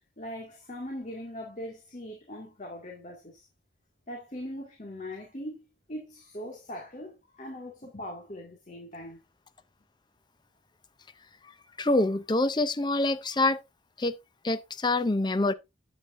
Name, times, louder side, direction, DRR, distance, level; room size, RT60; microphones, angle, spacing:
voice 1, 0.0-3.5 4.1-5.6 5.9-9.2, left 1 dB, 40° left, 2.0 m, -40 dB
voice 2, 11.8-13.6 14.0-14.1 14.4-15.5, left 2 dB, 25° left, 0.6 m, -25 dB
9.1 x 8.4 x 2.6 m
head